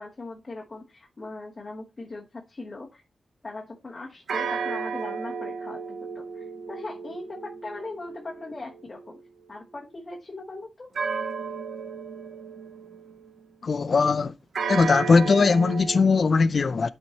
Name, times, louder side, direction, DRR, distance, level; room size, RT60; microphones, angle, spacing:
voice 1, 0.0-3.0 3.4-9.2 9.5-10.9, left 2 dB, 30° left, 1.1 m, -40 dB
sound 1, 4.3-9.2 10.9-13.3 14.5-16.0, right 5 dB, 70° right, 0.6 m, -33 dB
voice 2, 13.6-14.3 14.7-16.9, left 4 dB, 50° left, 0.4 m, -20 dB
11.0 x 4.4 x 2.8 m
wide cardioid pair, 150°, 0 cm